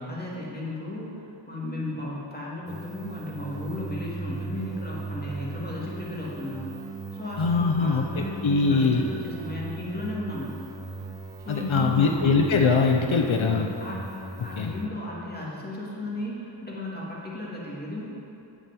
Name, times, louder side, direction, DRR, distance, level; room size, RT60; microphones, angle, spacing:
voice 1, 0.1-6.7 7.1-10.6 11.4-12.3 13.3-14.0 14.4-18.1, left 1 dB, 20° left, -5 dB, 2.6 m, -34 dB
sound 1, 2.7-14.9, right 3 dB, 5° right, 1.2 m, -38 dB
voice 2, 7.4-9.0 11.5-13.7 14.6-14.7, left 4 dB, 85° left, 2 dB, 0.8 m, -22 dB
8.4 x 7.4 x 7.6 m, 2.8 s
wide cardioid pair, 65°, 46 cm